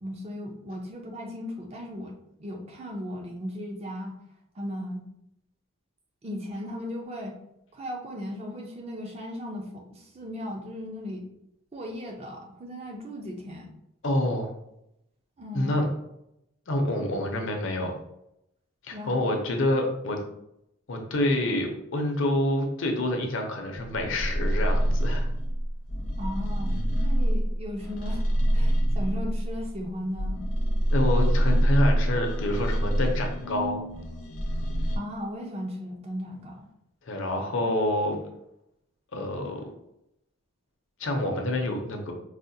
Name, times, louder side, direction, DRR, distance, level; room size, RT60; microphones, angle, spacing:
voice 1, 0.0-4.2 4.5-5.0 6.2-7.4 7.7-11.3 11.7-13.7 15.4-15.8 18.9-19.4 26.2-28.2 28.5-30.4 35.0-36.7, equal, 30° right, 1 dB, 0.5 m, -36 dB
voice 2, 14.0-14.5 15.5-15.9 16.7-18.0 18.8-20.2 20.9-25.3 30.9-33.8 37.0-38.2 39.1-39.6 41.0-42.1, left 1 dB, 60° left, 2 dB, 0.6 m, -27 dB
sound 1, 23.7-29.8 30.2-35.0, equal, 90° left, 0.8 m, -26 dB
4.8 x 2.1 x 2.7 m, 0.81 s
head